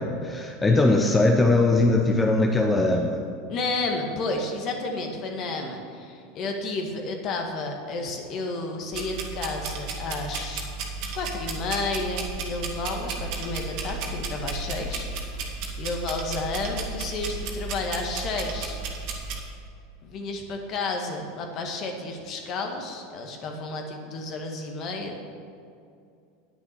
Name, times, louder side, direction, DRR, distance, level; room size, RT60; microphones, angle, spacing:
voice 1, 0.0-3.2, left 2 dB, 15° left, 2 dB, 1.0 m, -21 dB
voice 2, 3.5-10.7 11.1-18.8 20.0-25.2, left 3 dB, 45° left, 3 dB, 1.9 m, -31 dB
sound 1, 8.9-19.4, right 3 dB, 55° right, 1.9 m, -33 dB
9.6 x 9.5 x 6.1 m, 2.5 s
hypercardioid pair, 85°, 0 cm